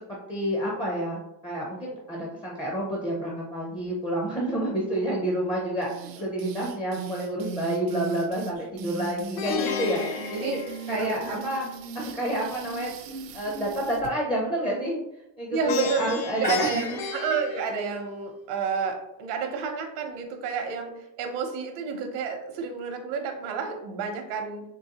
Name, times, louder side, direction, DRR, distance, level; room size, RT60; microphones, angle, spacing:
voice 1, 0.3-10.6 10.9-11.7 11.9-12.9 13.3-15.0 15.4-17.0, right 1 dB, 10° left, -3 dB, 0.5 m, -29 dB
sound 1, 5.8-14.1, right 4 dB, 55° right, 0.5 m, -38 dB
Plucked string instrument, 9.4-11.5 15.7-18.3, left 6 dB, 60° left, 0.5 m, -33 dB
voice 2, 10.9-11.5 15.5-16.1 16.4-24.6, right 5 dB, 75° right, 5 dB, 0.8 m, -30 dB
3.8 x 3.0 x 2.8 m, 0.87 s
cardioid pair, 150°, 42 cm